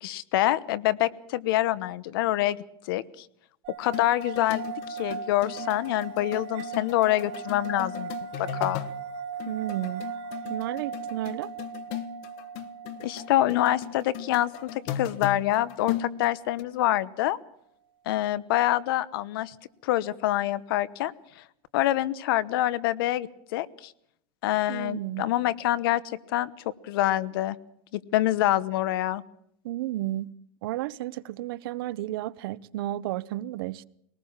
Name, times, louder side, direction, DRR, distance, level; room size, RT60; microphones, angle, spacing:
voice 1, 0.0-2.6 2.9-3.3 3.8-4.6 4.9-8.1 8.4-8.8 13.0-17.4 18.1-19.5 19.8-21.4 21.7-23.9 24.4-26.0 26.3-26.5 26.8-27.6 27.9-29.2, left 14 dB, 80° left, 1.1 m, -26 dB
sound 1, 3.6-15.0, right 6 dB, 45° right, 2.8 m, -38 dB
sound 2, 3.8-9.0 9.4-16.6, left 11 dB, 55° left, 1.3 m, -38 dB
voice 2, 9.5-10.0 10.5-11.5 24.7-25.3 29.6-30.3 30.6-33.9, right 15 dB, 80° right, 0.8 m, -32 dB
21.0 x 19.0 x 7.3 m
supercardioid pair, 145°, 12 cm